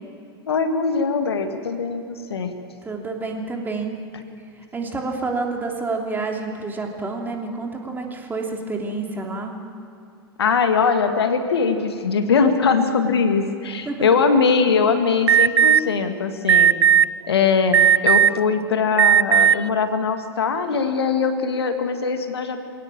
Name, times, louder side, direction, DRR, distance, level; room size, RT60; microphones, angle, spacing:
voice 1, 0.5-2.5 10.4-16.7 17.3-22.6, left 5 dB, 70° left, 7 dB, 1.8 m, -21 dB
voice 2, 2.8-4.0 4.7-9.5 13.8-14.1, right 3 dB, 15° right, 1 dB, 3.1 m, -28 dB
Alarm, 15.3-15.8 16.5-17.0 17.7-18.4 18.9-19.5, right 9 dB, 70° right, 0.4 m, -14 dB
22.5 x 18.0 x 7.4 m, 2.6 s
figure-of-eight pair, 90°, 14 cm